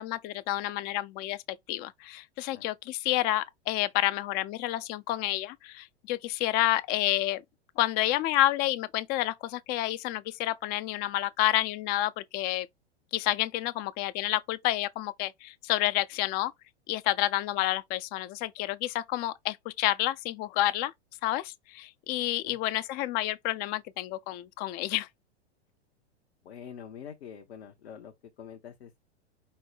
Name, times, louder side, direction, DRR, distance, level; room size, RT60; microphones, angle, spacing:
voice 1, 0.0-1.4 1.7-7.4 7.8-12.7 13.1-16.5 16.9-20.9 21.2-25.1, left 15 dB, 30° left, 0.4 m, -29 dB
voice 2, 26.4-29.0, left 8 dB, 70° left, 0.9 m, -45 dB
5.4 x 2.1 x 4.6 m
figure-of-eight pair, 95°, 33 cm